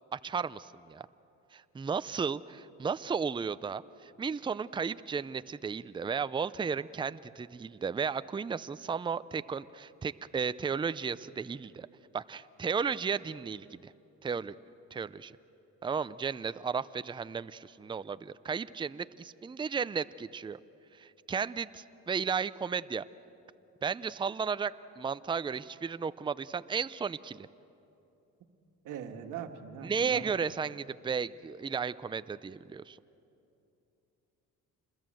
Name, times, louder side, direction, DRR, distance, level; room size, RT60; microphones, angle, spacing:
voice 1, 0.1-1.1 1.5-11.9 12.1-13.9 14.2-14.5 14.9-15.4 15.8-20.6 20.9-23.0 23.8-27.5 29.8-33.0, right 6 dB, 15° right, 15 dB, 0.5 m, -34 dB
voice 2, 28.8-30.3, right 8 dB, 90° right, 6 dB, 1.6 m, -41 dB
27.0 x 21.0 x 7.7 m, 2.9 s
cardioid pair, 90°, 30 cm